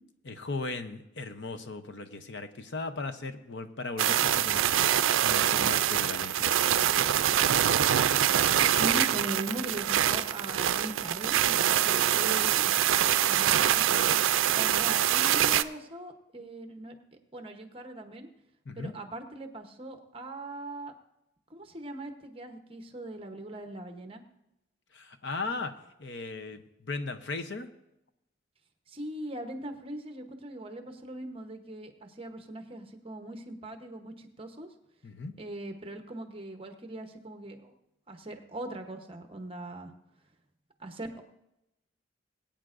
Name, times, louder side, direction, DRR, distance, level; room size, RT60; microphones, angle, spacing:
voice 1, 0.3-4.7 5.2-7.4 18.7-18.9 24.9-27.7 35.0-35.3, left 3 dB, 60° left, 8 dB, 0.7 m, -37 dB
sound 1, 4.0-15.6, right 10 dB, 80° right, 0.4 m, -25 dB
voice 2, 8.7-12.7 13.2-14.2 14.5-17.0 17.3-18.3 18.7-20.9 21.5-24.2 28.9-34.7 35.4-37.7 38.1-39.9 40.8-41.2, right 1 dB, 25° right, 5 dB, 0.9 m, -40 dB
21.5 x 8.9 x 2.5 m, 0.87 s
head